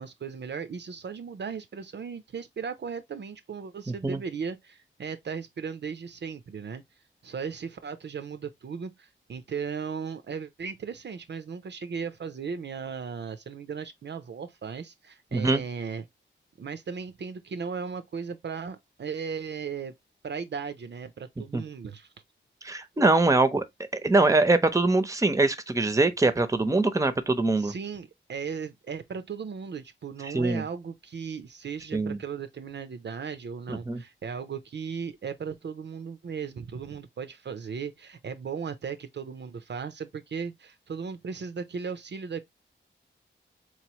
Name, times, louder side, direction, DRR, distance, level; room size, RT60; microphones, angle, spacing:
voice 1, 0.0-6.8 7.2-16.0 16.6-19.9 20.2-22.1 27.6-42.4, right 6 dB, 60° right, 0.5 m, -36 dB
voice 2, 3.9-4.2 15.3-15.6 21.5-21.6 22.6-23.6 23.9-27.7 30.2-30.6 31.9-32.2 33.7-34.0, right 2 dB, 15° right, 0.7 m, -23 dB
4.2 x 3.1 x 2.9 m
wide cardioid pair, 80°, 21 cm